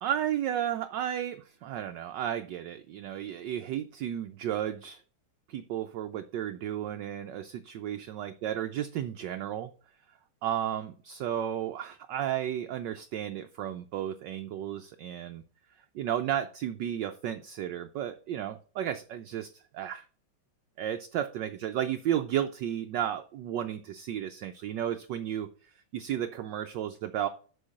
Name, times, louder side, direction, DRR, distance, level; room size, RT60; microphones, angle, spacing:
voice 1, 0.0-5.0 5.5-9.7 10.4-15.4 15.9-20.0 20.8-27.3, right 10 dB, 75° right, 8 dB, 1.1 m, -33 dB
6.7 x 5.3 x 6.4 m, 0.41 s
omnidirectional pair, 2.3 m